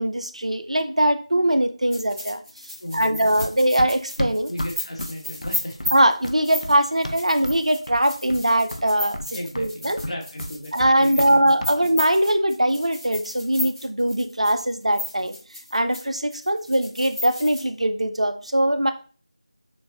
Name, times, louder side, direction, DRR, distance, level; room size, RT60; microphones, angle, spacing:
voice 1, 0.0-2.4 2.9-4.5 5.9-9.2 9.6-10.0 10.7-15.4 15.7-18.9, right 1 dB, 70° right, 9 dB, 0.6 m, -21 dB
sound 1, 1.9-16.0 16.3-17.6, left 1 dB, ahead, 0.5 m, -34 dB
voice 2, 2.8-3.3 4.5-5.7 9.3-11.9, left 1 dB, 60° left, 1 dB, 1.5 m, -36 dB
Run, 3.4-7.6 7.9-8.5 8.7-11.3 11.6-11.8, equal, 75° left, 0.6 m, -33 dB
6.6 x 2.7 x 2.6 m, 0.38 s
figure-of-eight pair, 170°, 4 cm